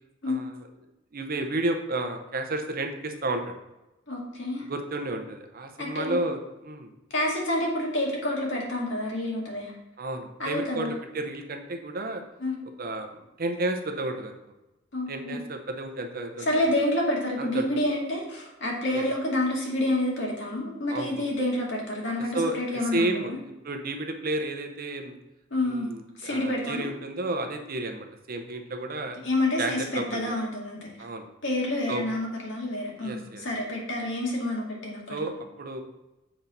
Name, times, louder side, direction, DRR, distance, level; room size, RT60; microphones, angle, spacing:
voice 1, 0.3-0.7 1.1-3.5 4.7-6.9 10.0-12.2 12.8-14.4 15.1-16.7 17.4-17.7 18.9-19.0 20.9-21.2 22.3-23.3 23.6-25.1 25.6-29.2 29.6-30.4 31.0-31.3 31.9-32.0 33.0-33.4 35.1-35.8, right 2 dB, 45° right, 5 dB, 0.7 m, -32 dB
voice 2, 4.1-4.7 5.8-6.2 7.1-9.7 10.4-10.9 12.4-12.6 14.9-15.4 16.5-23.4 25.5-25.9 26.2-26.8 29.2-30.9 31.4-35.2, left 1 dB, 60° left, -2 dB, 1.9 m, -28 dB
7.8 x 3.9 x 4.2 m, 0.98 s
head